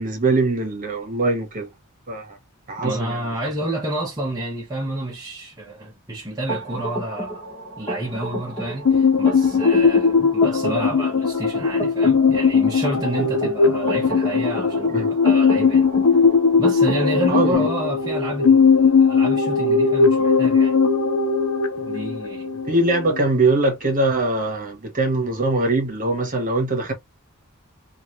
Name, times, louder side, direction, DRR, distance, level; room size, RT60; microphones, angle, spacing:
voice 1, 0.0-1.7 2.1-2.4 2.7-3.2 14.9-15.1 17.3-17.7 22.7-26.9, right 2 dB, 40° right, 1.2 m, -22 dB
voice 2, 2.8-7.4 7.8-15.9 16.6-20.8 21.8-22.6, right 1 dB, 20° right, 0.9 m, -29 dB
sound 1, 6.5-17.6, right 1 dB, 25° left, 1.6 m, -32 dB
sound 2, 8.8-23.3, left 5 dB, 85° left, 0.7 m, -18 dB
3.2 x 2.6 x 3.1 m
head